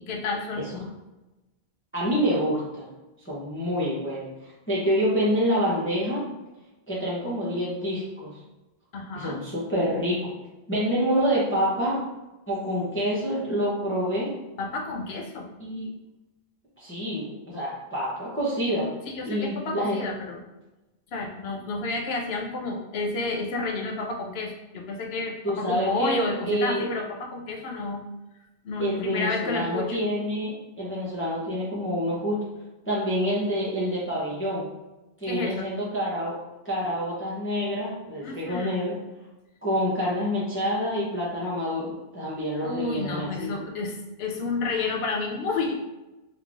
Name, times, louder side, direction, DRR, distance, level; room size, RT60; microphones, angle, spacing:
voice 1, 0.1-0.7 8.9-9.4 14.6-15.5 19.1-20.4 21.1-28.0 28.6-30.0 35.3-35.7 38.2-38.7 42.6-45.8, left 3 dB, 75° left, 2 dB, 0.9 m, -30 dB
voice 2, 1.9-2.9 3.2-6.3 6.9-8.4 9.1-10.3 10.7-12.1 12.5-14.3 15.6-15.9 16.8-18.9 19.2-20.0 25.4-26.9 28.8-32.4 32.8-34.7 35.2-36.4 36.6-39.0 39.6-43.5, equal, 15° left, -8 dB, 0.7 m, -27 dB
3.4 x 3.1 x 2.5 m, 1.0 s
omnidirectional pair, 1.1 m